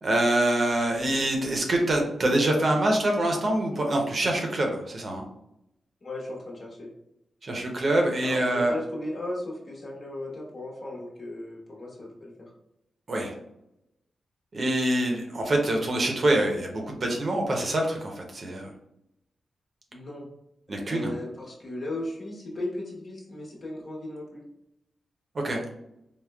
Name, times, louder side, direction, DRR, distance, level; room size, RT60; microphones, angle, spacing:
voice 1, 0.0-5.2 7.4-8.7 13.1-13.3 14.5-18.7 20.7-21.1 25.4-25.6, right 1 dB, 55° right, 1 dB, 0.7 m, -25 dB
voice 2, 6.0-6.9 8.2-12.5 19.9-20.3 20.8-24.4, left 1 dB, 55° left, -3 dB, 1.0 m, -36 dB
3.6 x 2.0 x 2.3 m, 0.83 s
cardioid pair, 50°, 0 cm